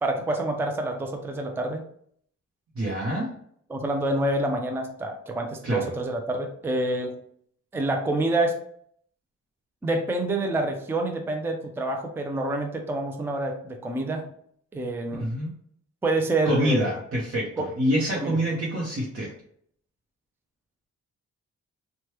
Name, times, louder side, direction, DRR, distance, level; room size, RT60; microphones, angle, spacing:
voice 1, 0.0-1.8 3.7-7.2 7.7-8.6 9.8-14.3 14.7-15.3 16.0-16.9 17.6-17.7 18.1-18.4, right 2 dB, 10° right, 4 dB, 0.4 m, -27 dB
voice 2, 2.8-3.3 5.6-5.8 15.2-15.5 16.4-19.3, equal, 45° right, -4 dB, 0.8 m, -26 dB
3.1 x 2.2 x 3.0 m, 0.64 s
cardioid pair, 95°, 30 cm